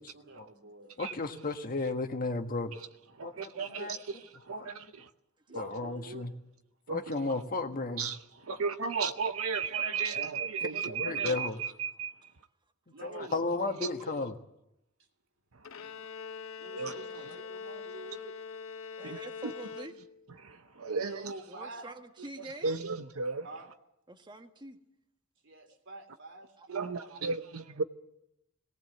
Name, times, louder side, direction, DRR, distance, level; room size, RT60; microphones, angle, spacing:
voice 1, 0.0-0.9 3.6-3.9 5.5-6.3 12.9-13.4 16.6-18.3 20.9-21.9 23.4-23.7 25.4-27.4, right 2 dB, 65° right, 3.2 m, -47 dB
voice 2, 1.0-2.7 3.2-3.9 4.5-4.8 5.5-6.3 6.9-8.1 8.5-8.9 9.9-10.1 10.9-11.6 13.0-14.3, left 3 dB, 45° left, 1.5 m, -34 dB
voice 3, 3.2-3.8 4.5-5.1 5.5-5.6 6.9-7.0 8.0-12.1 13.2-13.3 13.8-13.9 16.8-16.9 19.0-19.2 20.4-21.3 22.6-23.5 26.7-27.8, right 5 dB, 80° right, 0.8 m, -34 dB
Bowed string instrument, 15.6-20.4, left 5 dB, 85° left, 0.8 m, -43 dB
voice 4, 19.0-19.9 21.5-22.8 24.1-24.8, right 2 dB, 20° right, 1.6 m, -46 dB
18.5 x 18.5 x 7.9 m
head